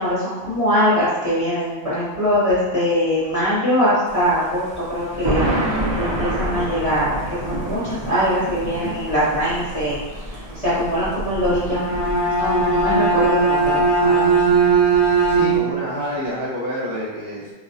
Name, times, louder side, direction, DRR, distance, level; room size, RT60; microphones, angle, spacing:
voice 1, 0.0-5.4 6.0-7.1 7.5-10.0 10.3-11.8 12.3-14.6, equal, 35° left, -11 dB, 0.7 m, -22 dB
Thunder, 4.1-15.6, right 1 dB, 35° right, 0.4 m, -29 dB
Bowed string instrument, 11.6-15.9, right 4 dB, 75° right, 1.5 m, -18 dB
voice 2, 15.3-17.5, equal, 50° right, -9 dB, 1.2 m, -28 dB
3.9 x 2.1 x 2.7 m, 1.2 s
omnidirectional pair, 1.3 m